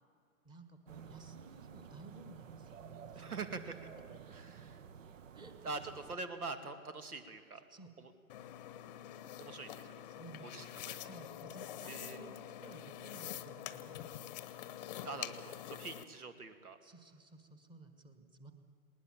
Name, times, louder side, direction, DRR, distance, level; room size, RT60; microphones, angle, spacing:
voice 1, 0.4-3.4 5.3-5.5 7.7-7.9 10.1-14.0 16.8-18.5, right 2 dB, 10° right, 8 dB, 1.3 m, -55 dB
sound 1, 0.9-6.2, right 7 dB, 60° right, 1.0 m, -52 dB
voice 2, 3.1-3.7 4.3-4.6 5.6-7.6 8.0-8.1 9.4-9.9 10.4-11.1 11.9-12.2 15.0-16.8, right 4 dB, 80° right, 10 dB, 2.4 m, -44 dB
sound 2, 8.3-16.0, left 12 dB, 30° left, 0.9 m, -46 dB
20.0 x 19.5 x 7.5 m, 2.5 s
hypercardioid pair, 135°, 44 cm